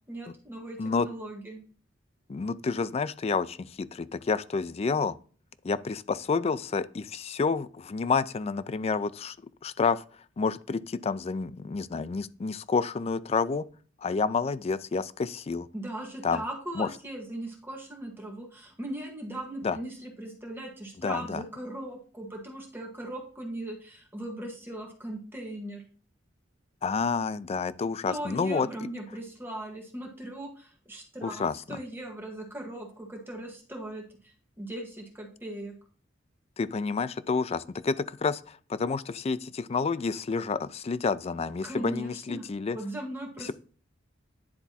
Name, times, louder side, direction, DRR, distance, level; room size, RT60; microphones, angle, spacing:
voice 1, 0.1-1.6 15.7-25.8 28.1-35.7 41.6-43.5, right 1 dB, 10° right, 1.7 m, -39 dB
voice 2, 2.3-5.2 5.6-9.4 9.6-10.0 10.4-13.7 14.0-15.7 16.2-16.4 16.8-16.9 19.6-19.8 21.0-21.4 26.8-28.7 31.2-31.8 36.6-42.8 43.4-43.5, left 4 dB, 35° left, 0.4 m, -29 dB
10.0 x 3.5 x 4.1 m
head